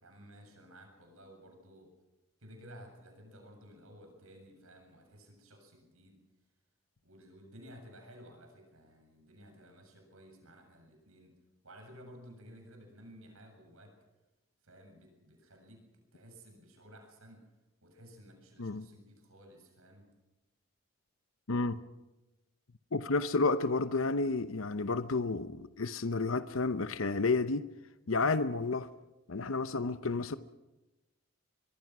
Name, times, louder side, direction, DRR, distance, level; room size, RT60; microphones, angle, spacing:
voice 1, 0.0-1.9 2.4-6.2 7.0-11.3 11.6-13.9 14.6-17.5 17.8-20.1, equal, 85° right, 7.5 m, -55 dB
voice 2, 21.5-21.8 22.9-27.6 28.1-28.9 29.3-30.4, left 3 dB, 75° left, 0.8 m, -31 dB
24.5 x 22.5 x 6.1 m
head